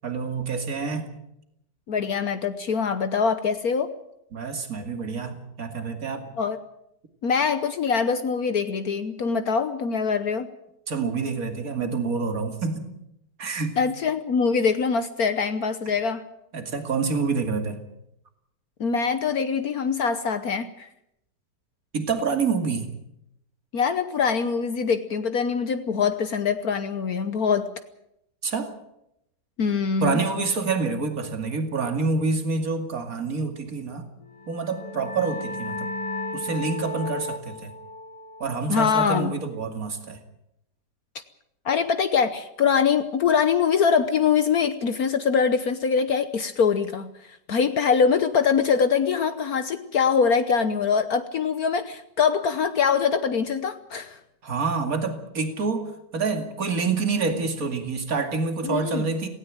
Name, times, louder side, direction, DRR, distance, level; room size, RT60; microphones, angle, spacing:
voice 1, 0.0-1.1 4.3-6.3 10.9-12.9 13.4-13.8 16.5-17.8 21.9-22.9 28.4-28.7 30.0-34.1 34.5-35.9 36.3-37.7 38.4-40.2 54.4-59.3, right 4 dB, 55° right, 2.8 m, -27 dB
voice 2, 1.9-3.9 6.4-6.6 7.2-10.5 13.8-16.2 18.8-20.9 23.7-27.7 29.6-30.2 38.7-39.4 41.6-47.1 47.5-54.2 58.6-59.1, left 6 dB, 60° left, 1.4 m, -23 dB
sound 1, 34.3-39.7, left 2 dB, 25° left, 0.9 m, -35 dB
18.0 x 17.0 x 9.0 m
omnidirectional pair, 1.9 m